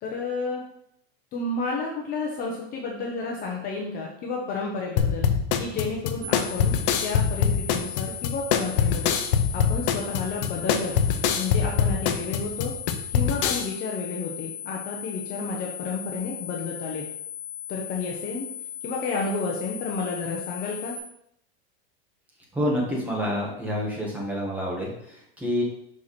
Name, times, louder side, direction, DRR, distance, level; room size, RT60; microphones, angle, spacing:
voice 1, 0.0-0.6 1.3-5.3 5.6-9.1 9.5-10.9 11.3-12.7 13.1-17.0 17.7-18.4 18.8-21.0, left 4 dB, 30° left, -1 dB, 0.9 m, -31 dB
sound 1, 5.0-13.7, left 7 dB, 60° left, 0.8 m, -24 dB
sound 2, 6.2-21.0, left 9 dB, 30° right, 0.7 m, -38 dB
voice 2, 22.5-25.6, equal, 5° right, -4 dB, 1.6 m, -28 dB
6.0 x 4.7 x 4.2 m, 0.73 s
supercardioid pair, 155°, 30 cm